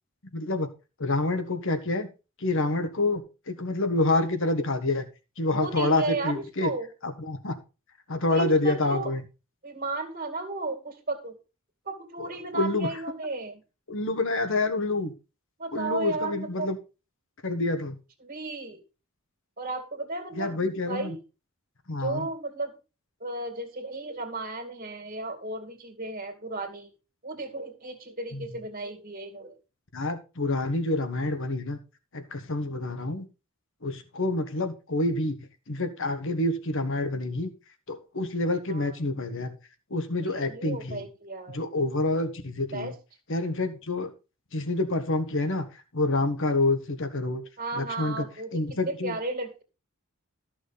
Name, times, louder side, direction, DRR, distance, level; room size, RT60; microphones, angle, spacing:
voice 1, 0.3-0.7 1.0-2.1 2.4-5.1 5.4-6.7 7.0-7.6 8.1-9.2 12.2-12.3 12.5-12.9 13.9-15.1 15.7-16.8 17.4-18.0 20.4-21.1 21.9-22.3 28.3-28.4 29.9-31.8 32.1-33.2 33.8-37.5 37.9-39.6 39.9-41.0 41.5-42.9 43.3-44.1 44.5-45.7 45.9-47.4 47.7-48.2 48.5-49.2, left 2 dB, 60° left, 9 dB, 1.5 m, -27 dB
voice 2, 5.5-6.9 8.3-9.1 9.6-11.4 11.9-13.6 15.6-16.7 18.2-18.8 19.6-21.2 22.0-22.7 23.2-26.9 27.2-29.5 38.7-38.9 40.2-41.6 42.7-42.9 47.6-49.6, right 2 dB, 40° right, 6 dB, 2.3 m, -34 dB
13.5 x 6.2 x 4.0 m, 0.30 s
head